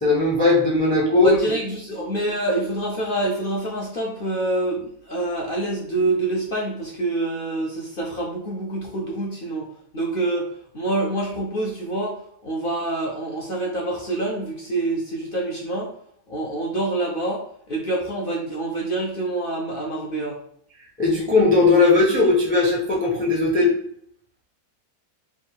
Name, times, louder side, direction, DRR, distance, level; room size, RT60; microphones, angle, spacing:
voice 1, 0.0-1.4 21.0-23.7, left 3 dB, 10° left, -2 dB, 0.4 m, -18 dB
voice 2, 1.1-9.7 9.9-10.5 10.7-15.9 16.3-20.4, right 2 dB, 65° left, -2 dB, 0.5 m, -26 dB
3.6 x 2.4 x 4.4 m, 0.67 s
omnidirectional pair, 1.8 m